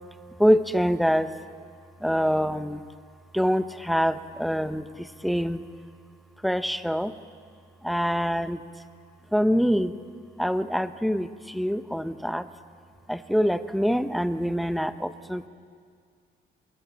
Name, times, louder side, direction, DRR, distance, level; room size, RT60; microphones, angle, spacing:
voice 1, 0.4-1.3 2.0-2.9 3.3-5.6 6.4-7.1 7.8-8.6 9.3-10.0 10.4-12.5 13.1-15.5, equal, ahead, 11 dB, 0.9 m, -25 dB
24.0 x 21.0 x 7.1 m, 2.1 s
cardioid pair, 90°, 20 cm